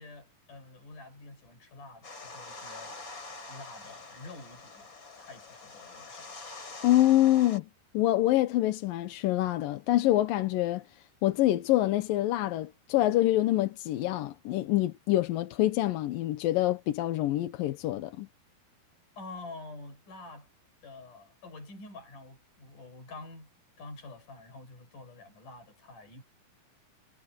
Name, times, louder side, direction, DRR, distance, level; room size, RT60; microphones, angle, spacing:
voice 1, 0.0-3.0 3.5-6.3 19.2-20.5 20.8-23.5 23.8-26.2, left 3 dB, 55° left, 8.4 m, -47 dB
sound 1, 2.0-7.6, left 3 dB, 30° left, 4.1 m, -45 dB
voice 2, 6.8-7.7 7.9-10.8 11.2-18.3, left 15 dB, 70° left, 2.5 m, -26 dB
omnidirectional pair, 4.5 m